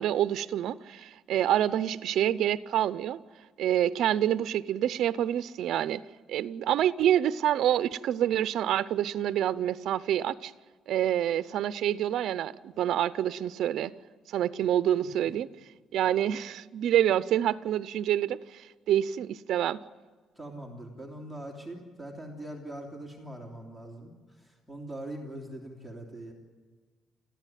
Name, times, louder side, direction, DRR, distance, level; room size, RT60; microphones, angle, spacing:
voice 1, 0.0-3.2 3.6-6.0 6.3-10.5 10.9-13.9 14.3-15.5 15.9-19.8, right 11 dB, 70° right, 0.7 m, -27 dB
voice 2, 20.4-26.3, right 1 dB, ahead, 3.2 m, -42 dB
30.0 x 14.5 x 9.2 m
cardioid pair, 135°, 0 cm